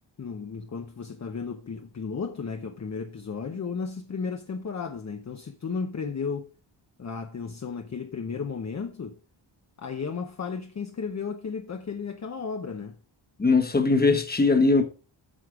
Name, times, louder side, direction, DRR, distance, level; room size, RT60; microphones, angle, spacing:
voice 1, 0.2-6.5 7.0-9.2 9.8-13.0, left 5 dB, 35° left, 0.7 m, -34 dB
voice 2, 13.4-14.8, left 3 dB, 20° left, 1.1 m, -20 dB
9.1 x 6.4 x 4.6 m
wide cardioid pair, 180°, 46 cm